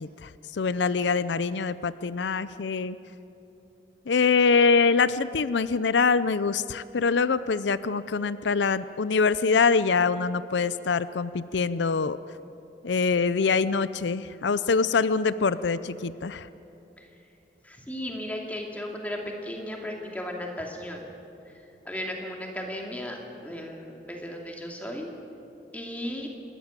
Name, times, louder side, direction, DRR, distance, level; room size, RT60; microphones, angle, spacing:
voice 1, 0.0-3.0 4.1-12.2 12.8-16.5, left 5 dB, 90° left, 15 dB, 0.5 m, -24 dB
voice 2, 17.6-21.0 21.9-25.1 25.7-26.3, left 1 dB, 10° left, 0 dB, 2.4 m, -35 dB
28.0 x 13.5 x 8.8 m, 2.9 s
head